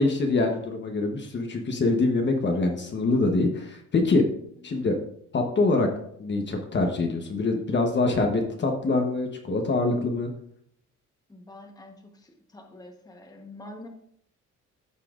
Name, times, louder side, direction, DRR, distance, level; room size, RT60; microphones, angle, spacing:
voice 1, 0.0-4.2 4.6-4.9 5.3-5.9 6.2-10.3, left 3 dB, 35° left, 3 dB, 1.0 m, -24 dB
voice 2, 11.3-13.9, left 1 dB, 10° left, 3 dB, 1.1 m, -46 dB
13.5 x 5.7 x 2.5 m, 0.70 s
cardioid pair, 140°, 31 cm